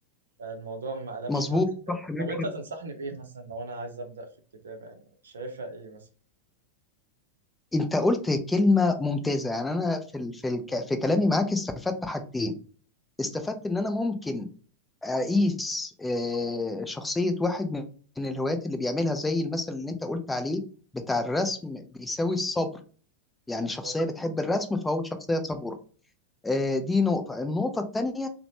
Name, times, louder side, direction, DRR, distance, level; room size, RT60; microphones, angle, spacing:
voice 1, 0.4-1.6 1.9-4.3 4.6-4.9 5.2-6.1 23.6-23.9 24.2-24.3, right 2 dB, 70° right, 4 dB, 0.5 m, -37 dB
voice 2, 1.3-2.2 7.7-12.5 13.2-14.5 15.0-17.8 18.2-20.6 20.9-22.7 23.5-25.7 26.4-28.3, left 2 dB, 10° left, 8 dB, 0.4 m, -27 dB
2.9 x 2.0 x 2.9 m, 0.40 s
figure-of-eight pair, 90°, 0 cm